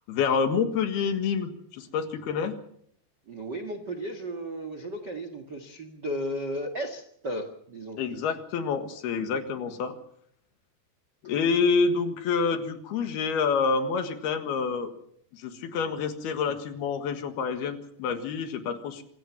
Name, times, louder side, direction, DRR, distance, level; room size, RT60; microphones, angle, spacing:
voice 1, 0.1-2.5 8.0-10.0 11.2-14.9 15.3-19.0, left 5 dB, 70° left, 8 dB, 3.5 m, -27 dB
voice 2, 3.3-8.0, equal, 50° right, 9 dB, 1.3 m, -34 dB
26.0 x 16.0 x 7.2 m, 0.67 s
omnidirectional pair, 4.9 m